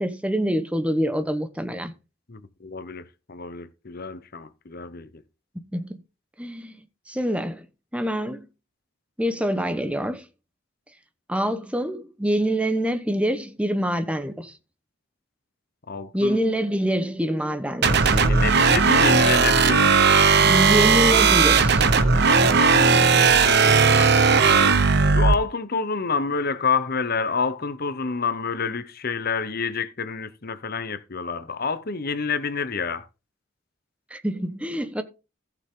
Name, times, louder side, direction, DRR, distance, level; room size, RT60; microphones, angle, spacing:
voice 1, 0.0-1.9 5.7-6.0 6.4-6.8 7.1-7.7 7.9-8.5 9.2-10.2 11.3-14.6 16.1-18.2 20.4-21.8 34.1-35.0, equal, 5° right, 1.1 m, -25 dB
voice 2, 2.3-5.2 15.9-16.4 18.0-20.0 22.4-24.8 25.1-33.1, left 5 dB, 45° left, 0.9 m, -28 dB
sound 1, 17.8-25.3, right 5 dB, 55° right, 1.1 m, -17 dB
15.5 x 6.8 x 3.8 m
head